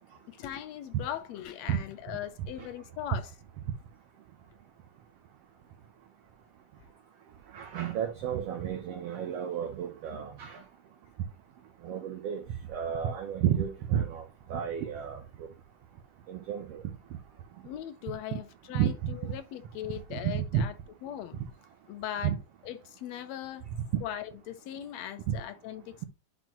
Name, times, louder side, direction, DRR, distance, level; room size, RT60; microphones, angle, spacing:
voice 1, 0.3-3.3 17.6-20.7 21.0-21.4 21.9-22.3 22.6-23.7 24.0-26.1, left 11 dB, 75° left, 1.7 m, -39 dB
voice 2, 7.5-10.6 11.8-12.4 12.7-14.2 14.5-15.2 16.3-16.8 18.3-18.4 18.7-18.9 19.2-19.3 20.1-20.6 22.2-22.4 25.3-25.4, right 9 dB, 70° right, 1.6 m, -31 dB
10.5 x 4.1 x 3.0 m
omnidirectional pair, 3.5 m